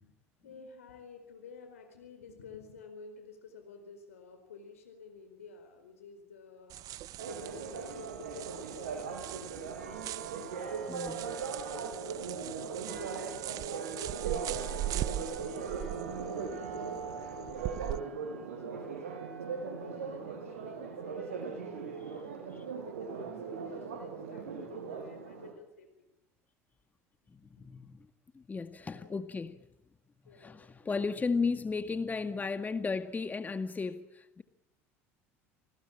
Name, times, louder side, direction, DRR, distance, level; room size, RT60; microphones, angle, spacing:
voice 1, 0.0-6.8 7.2-10.0 10.6-11.1 11.5-12.5 12.9-14.5 14.8-19.4 19.8-21.5 22.0-26.1 27.6-27.8 28.9-29.4 30.2-30.8, left 5 dB, 90° left, 7 dB, 4.6 m, -52 dB
sound 1, 6.7-18.0, right 14 dB, 55° right, 1.0 m, -41 dB
Church bell, 7.2-25.5, right 5 dB, 85° right, 6.6 m, -39 dB
voice 2, 10.9-11.2 22.0-22.2 22.5-22.6 27.3-28.1 28.3-29.6 30.3-34.4, left 4 dB, 20° left, 9 dB, 1.9 m, -35 dB
29.5 x 19.5 x 8.8 m, 0.92 s
hypercardioid pair, 80°, 7 cm